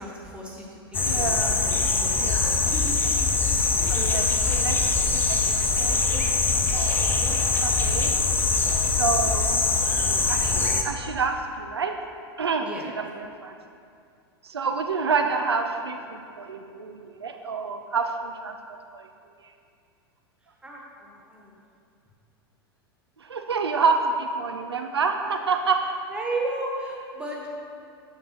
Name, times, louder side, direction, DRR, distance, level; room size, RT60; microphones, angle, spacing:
voice 1, 0.0-2.5 3.9-4.6 5.9-6.4 7.0-7.3 12.6-12.9 20.6-21.5 26.1-27.5, right 2 dB, 10° right, -3 dB, 1.5 m, -35 dB
sound 1, 0.9-10.8, left 4 dB, 15° left, 0.6 m, -23 dB
voice 2, 1.0-1.6 2.2-2.4 3.9-5.0 5.3-6.0 6.8-7.1 7.6-8.2 8.8-9.7 10.3-12.0 12.4-13.6 14.4-18.6 18.9-19.1 23.2-25.9, right 5 dB, 80° right, 5 dB, 0.5 m, -28 dB
9.0 x 6.6 x 3.0 m, 2.4 s
figure-of-eight pair, 90°, 13 cm